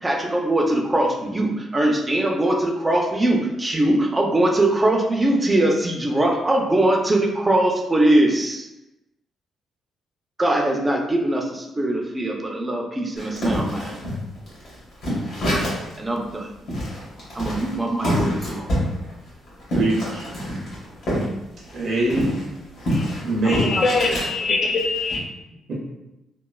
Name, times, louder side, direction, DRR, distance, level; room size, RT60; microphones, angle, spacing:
voice 1, 0.0-8.7 10.4-14.0 16.0-16.5 17.3-18.7, right 1 dB, 20° right, 1 dB, 0.5 m, -21 dB
sound 1, 13.2-16.0 16.3-16.4 16.7-21.3 21.6-24.3 24.8-25.2, equal, 65° left, 1.3 m, -26 dB
voice 2, 19.7-20.2 21.7-22.5 23.2-23.8 25.7-25.8, right 2 dB, 65° right, -3 dB, 0.6 m, -23 dB
voice 3, 23.4-25.2, left 3 dB, 45° left, 1 dB, 0.4 m, -23 dB
3.0 x 2.1 x 2.3 m, 0.95 s
cardioid pair, 90°, 0 cm